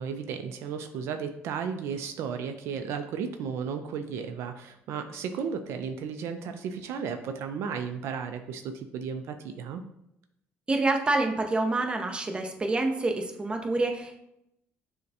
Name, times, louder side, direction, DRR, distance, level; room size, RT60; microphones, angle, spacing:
voice 1, 0.0-9.8, right 6 dB, 70° right, 7 dB, 0.3 m, -34 dB
voice 2, 10.7-14.2, right 2 dB, 20° right, 4 dB, 0.6 m, -27 dB
6.4 x 2.1 x 2.7 m, 0.82 s
cardioid pair, 100°, 5 cm